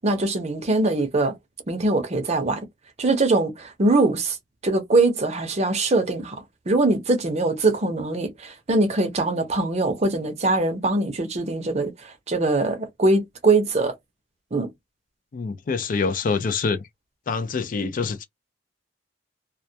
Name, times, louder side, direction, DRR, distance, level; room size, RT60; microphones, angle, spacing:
voice 1, 0.0-1.3 1.7-2.7 3.0-4.4 4.6-13.9 14.5-14.7, right 2 dB, 35° right, 0.6 m, -22 dB
voice 2, 15.3-16.9 17.3-18.2, left 4 dB, 45° left, 0.4 m, -25 dB
2.1 x 2.1 x 2.7 m
head